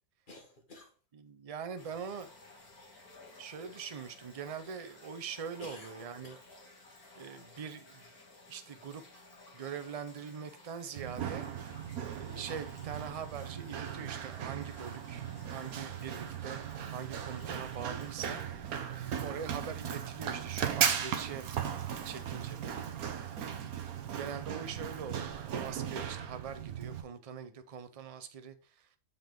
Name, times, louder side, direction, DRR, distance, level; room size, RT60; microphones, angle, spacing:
voice 1, 0.3-1.0 5.6-6.4 15.0-15.3 23.4-23.8, left 2 dB, 35° left, 1.7 m, -53 dB
voice 2, 1.2-2.3 3.4-6.4 7.2-8.1 8.5-9.0 9.5-11.5 12.1-16.6 16.9-18.4 19.2-21.7 22.0-23.2 24.1-28.6, right 7 dB, 40° right, 0.5 m, -43 dB
sound 1, 1.8-18.3, left 2 dB, 75° left, 2.4 m, -56 dB
Run, 11.0-27.0, right 8 dB, 75° right, 1.3 m, -37 dB
6.9 x 5.7 x 3.8 m
omnidirectional pair, 1.6 m